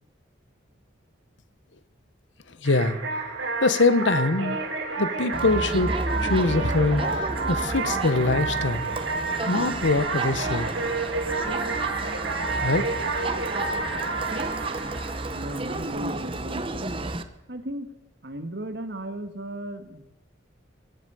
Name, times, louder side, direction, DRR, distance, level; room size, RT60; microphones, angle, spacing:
voice 1, 2.6-3.0 3.6-4.6 5.0-5.9 6.2-8.8 9.5-10.7 12.6-13.0, left 3 dB, 70° left, 13 dB, 1.1 m, -23 dB
sound 1, 2.6-16.1, right 3 dB, 85° right, 3.7 m, -30 dB
Crowd, 5.3-17.2, right 2 dB, 25° right, 0.8 m, -31 dB
voice 2, 15.3-17.0 17.5-17.9 18.2-20.1, right 1 dB, 60° right, 8 dB, 1.7 m, -35 dB
23.0 x 8.4 x 6.9 m, 0.88 s
head